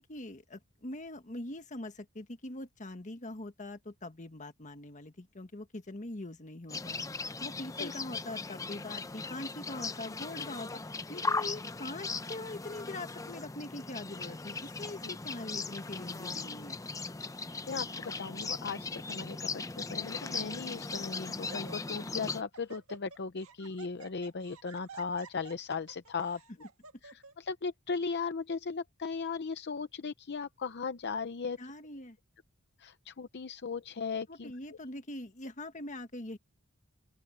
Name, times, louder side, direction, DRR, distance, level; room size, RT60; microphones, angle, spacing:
voice 1, 0.0-16.8 31.6-32.2 34.3-36.4, left 2 dB, 35° left, 1.5 m, -43 dB
sound 1, 6.7-22.4, left 4 dB, 15° left, 0.6 m, -38 dB
voice 2, 17.7-26.4 27.0-31.6 32.8-34.5, left 5 dB, 55° left, 0.7 m, -37 dB
Laughter, 19.0-19.4 20.2-20.3 20.7-21.0 21.3-22.1 22.3-27.3, right 5 dB, 90° right, 1.6 m, -53 dB
open air
head